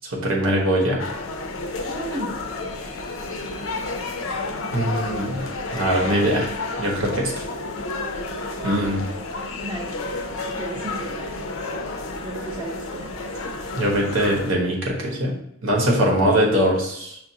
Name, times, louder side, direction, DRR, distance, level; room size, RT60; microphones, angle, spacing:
voice 1, 0.1-1.0 4.7-5.5 5.7-6.5 6.8-7.4 8.6-9.1 13.7-15.3 15.6-17.2, right 1 dB, 75° right, -1 dB, 1.0 m, -21 dB
sound 1, 1.0-14.5, left 2 dB, 75° left, 0.5 m, -31 dB
voice 2, 1.8-2.3 9.6-11.4 12.2-13.4, right 1 dB, 25° right, -3 dB, 0.7 m, -35 dB
5.8 x 2.4 x 2.8 m, 0.77 s
head